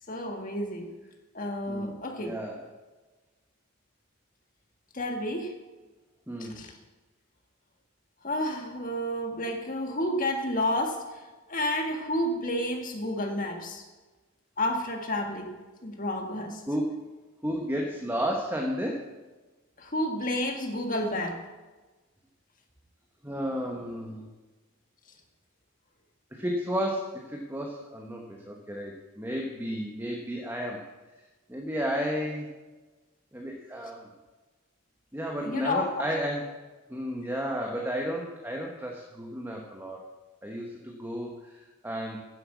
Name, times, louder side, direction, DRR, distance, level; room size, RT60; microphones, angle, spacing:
voice 1, 0.1-0.9 1.3-2.3 4.9-5.5 6.4-6.7 8.2-11.0 11.5-13.8 14.6-15.5 15.8-16.6 19.8-21.4 35.4-35.9, left 1 dB, 40° left, 4 dB, 1.8 m, -30 dB
voice 2, 1.7-2.7 6.3-6.6 16.7-17.0 17.4-19.0 23.2-24.3 26.3-30.9 31.5-32.5 33.3-34.1 35.1-36.6 36.9-40.1 40.4-42.2, equal, 10° right, 0 dB, 1.2 m, -33 dB
11.0 x 7.8 x 8.3 m, 1.2 s
head